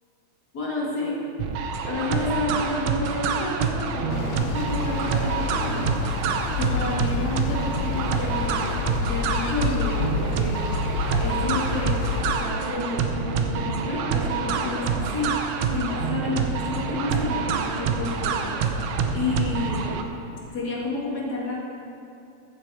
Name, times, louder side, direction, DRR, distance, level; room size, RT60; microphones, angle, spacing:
voice 1, 0.5-1.2 1.9-8.7 9.0-12.0 12.3-19.9 20.5-21.6, left 3 dB, 35° left, -5 dB, 2.0 m, -30 dB
sound 1, 1.4-20.0, right 6 dB, 75° right, 1.8 m, -27 dB
sound 2, 4.1-12.4, left 7 dB, 80° left, 1.6 m, -29 dB
14.5 x 7.5 x 4.8 m, 2.7 s
omnidirectional pair, 3.5 m